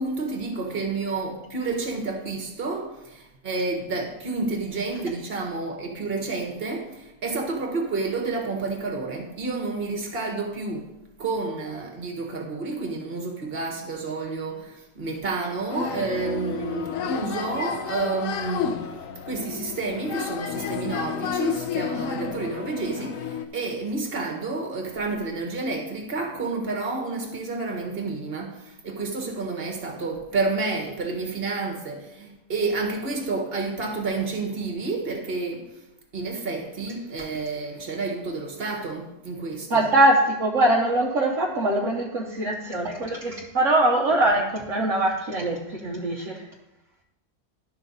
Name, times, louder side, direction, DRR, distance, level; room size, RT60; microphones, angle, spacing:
voice 1, 0.0-10.9 11.2-18.9 19.2-35.7 36.1-39.9, right 3 dB, 40° right, 2 dB, 1.6 m, -30 dB
sound 1, 15.7-23.5, left 7 dB, 65° left, 1.0 m, -31 dB
voice 2, 39.7-46.5, right 1 dB, 55° right, -2 dB, 1.3 m, -22 dB
11.5 x 5.7 x 4.0 m, 0.92 s
omnidirectional pair, 1.6 m